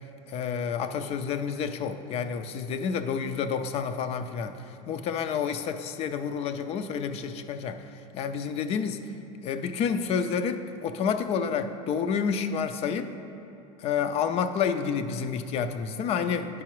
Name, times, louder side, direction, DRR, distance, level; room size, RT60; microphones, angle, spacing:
voice 1, 0.3-4.6 4.9-7.8 8.1-9.0 9.4-13.1 13.8-16.6, left 6 dB, 35° left, 9 dB, 0.4 m, -29 dB
11.0 x 4.8 x 3.0 m, 3.0 s
supercardioid pair, 135°, 17 cm